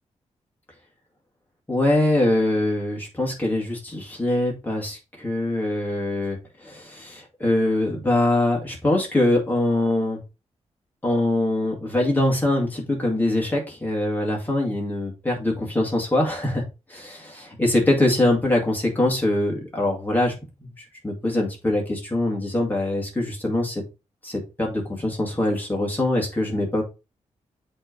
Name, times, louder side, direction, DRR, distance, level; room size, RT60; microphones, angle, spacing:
voice 1, 1.7-6.4 6.6-10.2 11.0-16.6 16.9-20.3 20.6-23.8 24.2-26.8, left 1 dB, 15° left, -1 dB, 2.1 m, -23 dB
7.9 x 3.3 x 3.8 m, 0.28 s
wide cardioid pair, 165°, 12 cm